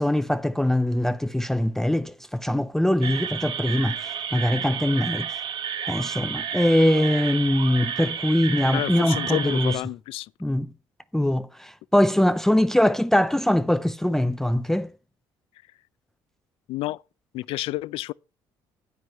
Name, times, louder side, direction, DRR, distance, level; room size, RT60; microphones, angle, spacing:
voice 1, 0.0-4.0 4.3-5.3 5.9-9.7 10.4-10.7 11.1-14.9, left 1 dB, 5° left, 0.5 m, -22 dB
sound 1, 3.0-9.8, right 8 dB, 55° right, 1.4 m, -31 dB
voice 2, 8.6-10.3 16.7-17.0 17.3-18.1, left 18 dB, 70° left, 0.5 m, -30 dB
12.5 x 9.4 x 3.0 m
supercardioid pair, 90°, 10 cm